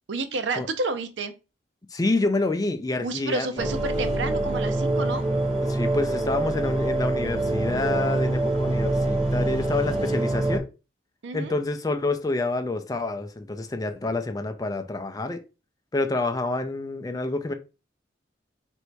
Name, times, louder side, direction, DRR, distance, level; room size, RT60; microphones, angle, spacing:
voice 1, 0.1-1.3 3.0-5.2 11.2-11.5, right 3 dB, 80° right, 0.5 m, -30 dB
voice 2, 1.9-3.5 5.6-10.7 11.3-15.4 15.9-17.5, left 2 dB, 20° left, 0.4 m, -27 dB
sound 1, 3.6-10.6, right 2 dB, 30° right, 0.9 m, -25 dB
3.3 x 2.6 x 4.5 m
head